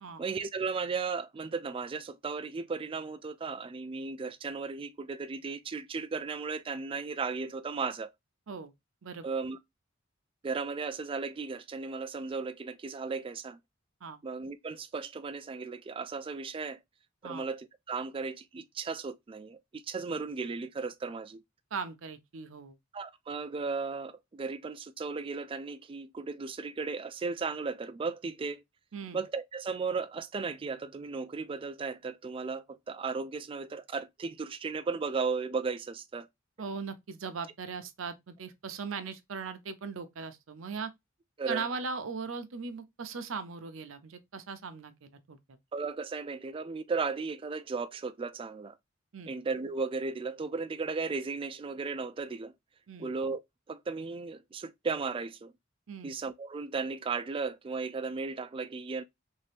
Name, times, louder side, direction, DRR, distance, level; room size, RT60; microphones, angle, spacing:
voice 1, 0.2-8.1 9.2-9.6 10.4-13.6 14.2-16.8 17.2-21.4 22.9-28.6 29.1-36.3 41.4-41.7 45.7-48.8 49.3-52.5 53.0-53.4 53.7-55.5 56.0-59.0, right 4 dB, 25° right, 0.3 m, -35 dB
voice 2, 21.7-22.8 28.9-29.2 36.6-40.9 41.5-45.6 49.1-49.3 52.9-53.1 55.9-56.1, right 5 dB, 70° right, 0.6 m, -39 dB
3.3 x 2.7 x 3.3 m
head